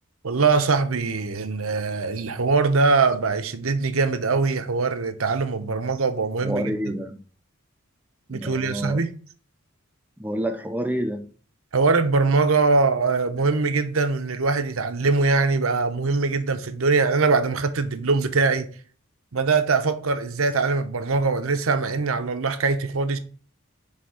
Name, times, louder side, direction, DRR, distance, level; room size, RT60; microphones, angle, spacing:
voice 1, 0.2-6.7 8.3-9.1 11.7-18.7 19.3-23.2, right 4 dB, 75° right, 0.9 m, -22 dB
voice 2, 6.4-7.2 8.3-9.0 10.2-11.3, right 1 dB, 10° right, 0.5 m, -28 dB
9.9 x 3.5 x 5.0 m
head